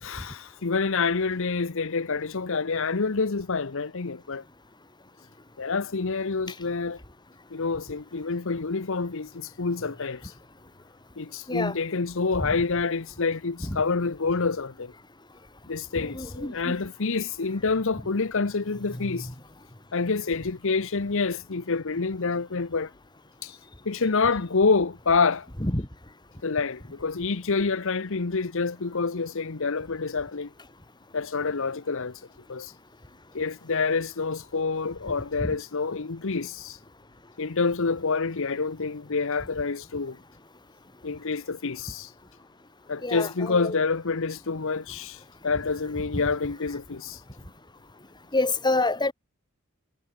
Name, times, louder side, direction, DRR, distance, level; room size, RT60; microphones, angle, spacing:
voice 1, 0.0-4.4 5.6-7.0 7.5-10.3 11.2-14.9 15.7-19.3 19.9-22.9 23.4-23.6 23.8-25.5 26.4-30.5 31.1-32.2 32.5-32.7 33.3-36.8 37.4-40.2 41.0-42.1 42.9-47.2, left 4 dB, 65° left, 0.9 m, -27 dB
voice 2, 16.0-16.7 18.9-19.3 25.6-25.9 35.4-35.5 43.0-43.7 46.1-46.3 48.3-49.1, left 2 dB, 20° left, 3.7 m, -28 dB
head